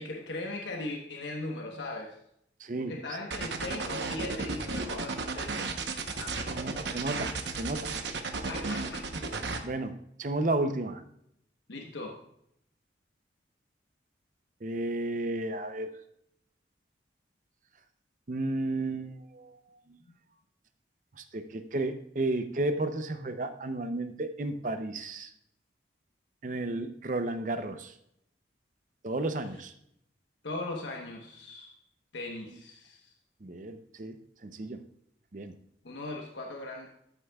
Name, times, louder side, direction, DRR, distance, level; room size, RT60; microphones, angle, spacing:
voice 1, 0.0-2.2 2.8-5.7 6.1-6.4 8.5-9.1 11.7-12.2 20.0-20.1 30.4-31.7 32.1-33.1 35.8-36.9, left 2 dB, 80° left, 1 dB, 1.1 m, -39 dB
voice 2, 2.6-3.2 6.5-7.9 9.6-11.0 14.6-15.9 18.3-19.6 21.2-25.3 26.4-27.9 29.0-29.7 33.4-34.2 34.4-34.8 35.3-35.5, right 2 dB, 45° right, 9 dB, 0.6 m, -33 dB
sound 1, 3.3-9.6, right 3 dB, 75° right, 0.9 m, -34 dB
13.5 x 8.1 x 2.3 m, 0.73 s
head